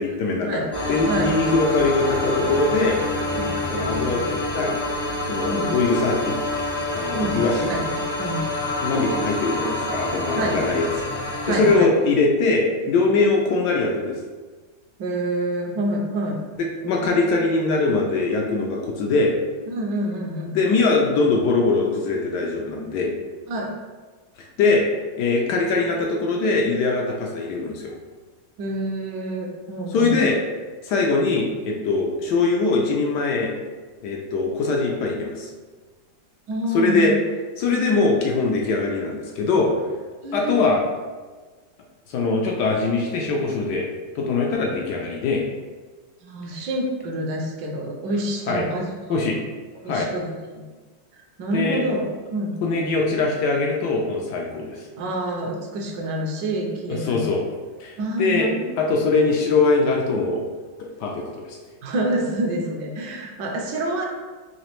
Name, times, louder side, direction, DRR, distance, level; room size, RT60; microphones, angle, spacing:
voice 1, 0.0-3.0 3.7-4.8 5.3-6.4 6.9-7.7 8.8-11.1 11.5-14.2 16.6-19.3 20.5-23.1 24.6-24.8 25.2-27.9 29.9-30.4 30.8-33.5 34.0-35.5 36.7-37.1 37.6-39.7 40.3-40.8 42.1-43.8 44.1-45.4 48.5-48.6 49.1-49.4 49.9-50.1 51.5-51.8 52.6-54.8 56.9-57.4 57.8-58.5 58.8-60.5 61.0-61.6, left 3 dB, 75° left, 0 dB, 1.1 m, -22 dB
sound 1, 0.7-11.7, left 1 dB, 30° left, 0.4 m, -27 dB
voice 2, 7.6-8.4 10.3-10.6 11.4-11.9 15.0-16.4 16.8-17.0 19.7-20.6 23.5-23.7 28.6-30.3 36.5-37.1 40.2-40.8 46.2-49.2 49.8-50.6 51.1-52.5 55.0-57.4 58.0-58.7 61.8-64.1, right 1 dB, 75° right, 0 dB, 1.3 m, -27 dB
4.1 x 2.8 x 3.0 m, 1.4 s
omnidirectional pair, 2.0 m